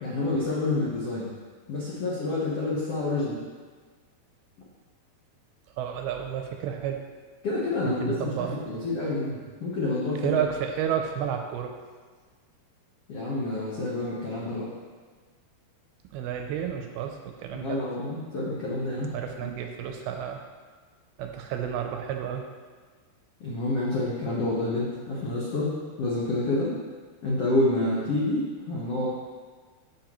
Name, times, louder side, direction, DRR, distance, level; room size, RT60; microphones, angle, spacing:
voice 1, 0.0-1.3 1.7-3.4 7.4-10.4 13.1-14.7 17.5-19.5 23.4-26.7 27.2-29.1, left 2 dB, 90° left, -7 dB, 1.3 m, -28 dB
voice 2, 5.8-7.0 8.0-8.8 10.2-11.8 16.1-17.8 19.0-20.4 21.2-22.5, right 8 dB, 80° right, 4 dB, 2.4 m, -31 dB
13.5 x 5.5 x 3.1 m, 1.5 s
omnidirectional pair, 4.8 m